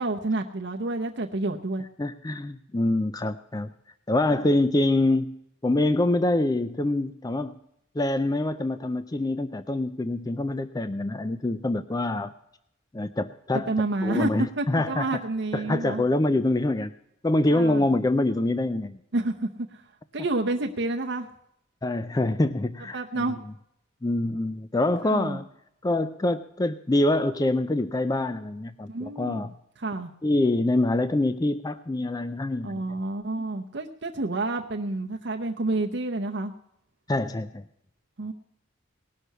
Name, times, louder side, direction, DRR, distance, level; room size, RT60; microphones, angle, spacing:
voice 1, 0.0-1.9 4.3-4.4 13.7-14.3 14.6-16.0 17.5-17.9 19.1-19.8 20.1-21.3 22.9-23.4 25.0-25.4 28.9-29.5 29.8-30.1 32.6-36.5 38.2-38.3, right 2 dB, 55° right, 3 dB, 0.7 m, -29 dB
voice 2, 2.0-3.7 4.1-5.3 5.6-7.6 8.0-12.3 12.9-13.7 14.0-15.2 15.5-16.9 17.2-19.0 21.8-23.3 24.0-25.5 25.8-29.5 30.2-32.8 37.1-37.6, left 2 dB, 20° left, 11 dB, 0.4 m, -25 dB
19.0 x 6.5 x 6.6 m, 0.77 s
head